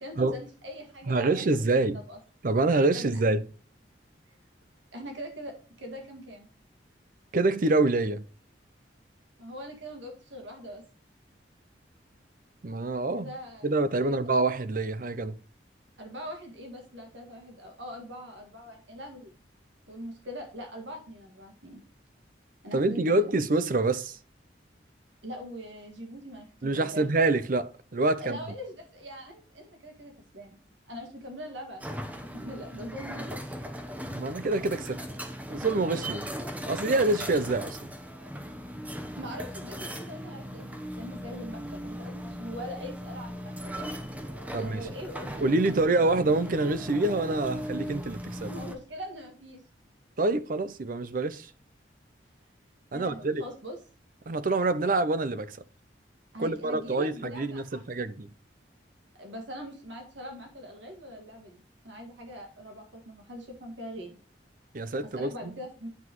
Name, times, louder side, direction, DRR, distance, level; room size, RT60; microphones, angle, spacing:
voice 1, 0.0-1.7 1.9-2.2 2.9-3.1 4.9-6.5 9.4-10.8 13.1-13.7 14.0-14.2 16.0-19.4 19.9-21.8 22.6-23.2 25.2-27.1 28.2-30.6 30.9-32.0 32.2-33.5 39.2-43.9 44.5-46.1 48.5-49.6 52.9-53.8 54.9-55.0 56.3-58.1 59.2-64.2 65.0-65.9, equal, 85° right, 1.9 m, -42 dB
voice 2, 1.1-2.0 2.4-3.4 7.3-8.2 12.6-13.3 13.6-15.4 22.7-24.2 26.6-28.4 34.1-35.0 35.5-36.3 36.7-37.9 44.5-44.8 45.4-48.5 50.2-51.5 52.9-53.4 54.3-55.6 56.4-58.3 64.7-65.5, right 2 dB, 50° right, 0.5 m, -26 dB
sound 1, 31.8-48.8, equal, 10° right, 0.8 m, -38 dB
9.6 x 5.7 x 3.0 m
head